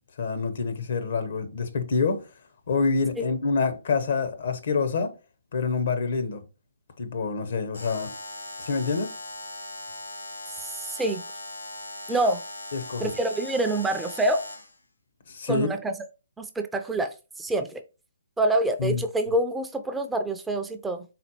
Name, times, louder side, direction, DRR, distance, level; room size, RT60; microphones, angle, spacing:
voice 1, 0.2-2.2 2.7-5.1 5.5-6.4 7.0-8.1 8.6-9.1 12.7-13.1 15.3-15.7 18.8-19.0, left 4 dB, 55° left, 0.8 m, -26 dB
Alarm, 7.7-14.8, left 1 dB, 85° left, 0.9 m, -39 dB
voice 2, 10.6-11.2 12.1-12.4 13.0-14.5 15.5-15.9 16.4-17.8 18.4-21.0, right 1 dB, 5° right, 0.4 m, -26 dB
4.1 x 3.8 x 2.8 m
figure-of-eight pair, 140°, 0 cm